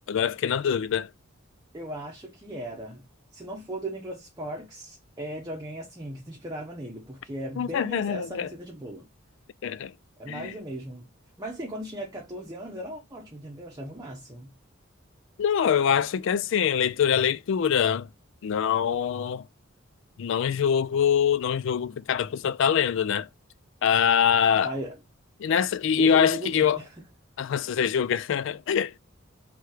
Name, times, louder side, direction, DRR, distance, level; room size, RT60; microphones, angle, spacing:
voice 1, 0.1-1.1 7.6-8.5 9.6-9.9 10.3-10.5 15.4-18.1 18.4-19.4 20.2-23.3 23.8-24.8 25.4-26.8 27.4-29.0, left 8 dB, 65° left, 0.3 m, -24 dB
voice 2, 1.7-3.1 3.3-9.1 10.2-11.1 11.4-14.5 24.6-25.0 26.0-26.9, right 1 dB, 20° right, 0.9 m, -37 dB
3.4 x 3.1 x 4.8 m
head